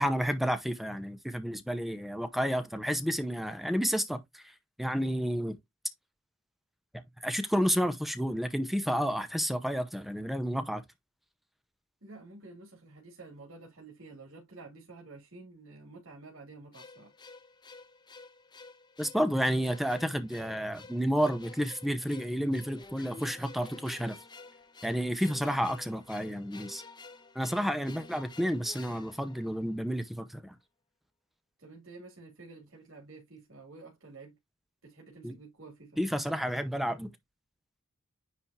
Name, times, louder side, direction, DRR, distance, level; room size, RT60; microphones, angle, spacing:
voice 1, 0.0-4.5 4.8-5.6 7.2-10.8 19.0-24.2 24.8-26.8 27.3-30.6 35.2-35.4 36.0-37.1, equal, ahead, 0.7 m, -30 dB
voice 2, 12.0-17.1 31.6-34.4 34.8-36.0, right 3 dB, 70° right, 3.0 m, -50 dB
sound 1, 16.7-30.0, left 3 dB, 20° left, 1.0 m, -51 dB
9.9 x 3.5 x 2.8 m
head